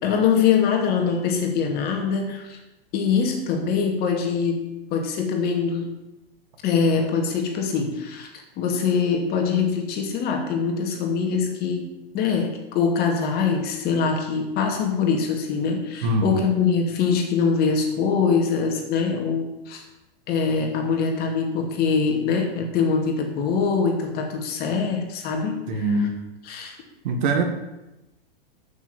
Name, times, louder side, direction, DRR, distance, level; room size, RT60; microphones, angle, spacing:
voice 1, 0.0-2.6 2.9-5.9 6.6-11.8 12.1-19.8 20.3-26.1 26.4-26.8, left 5 dB, 30° left, 3 dB, 2.6 m, -23 dB
voice 2, 16.0-16.4 25.7-26.1 27.0-27.4, right 2 dB, 50° right, 4 dB, 2.1 m, -22 dB
13.0 x 6.6 x 7.7 m, 0.98 s
figure-of-eight pair, 100°, 30 cm